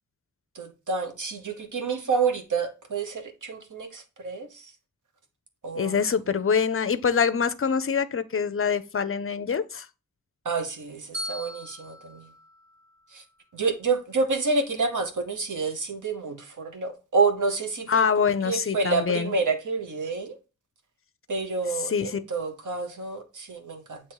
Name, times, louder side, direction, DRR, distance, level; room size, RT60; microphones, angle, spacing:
voice 1, 0.5-4.7 5.6-6.0 10.4-12.3 13.1-13.2 13.5-18.1 18.4-20.4 21.3-24.0, right 4 dB, 90° right, 1.2 m, -28 dB
voice 2, 5.7-9.9 17.9-19.3 21.9-22.2, left 6 dB, 45° left, 0.5 m, -25 dB
Bell, 11.1-13.3, left 1 dB, 40° right, 2.1 m, -40 dB
7.8 x 3.0 x 4.7 m
wide cardioid pair, 120°, 30 cm